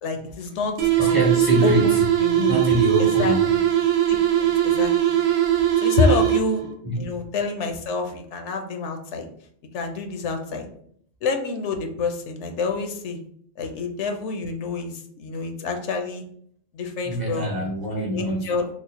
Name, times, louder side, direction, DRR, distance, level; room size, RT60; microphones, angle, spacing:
voice 1, 0.0-1.2 1.6-2.6 3.0-3.6 4.1-5.2 5.8-6.6 6.9-9.3 9.7-10.7 11.2-13.2 13.6-16.2 16.7-17.6 18.0-18.7, left 4 dB, 75° left, 5 dB, 0.9 m, -27 dB
sound 1, 0.8-6.7, right 11 dB, 90° right, 1.0 m, -20 dB
voice 2, 1.0-2.0 2.5-3.7 6.8-7.0 17.0-18.7, right 1 dB, 20° right, -3 dB, 0.7 m, -24 dB
3.0 x 2.0 x 4.1 m, 0.63 s
omnidirectional pair, 1.2 m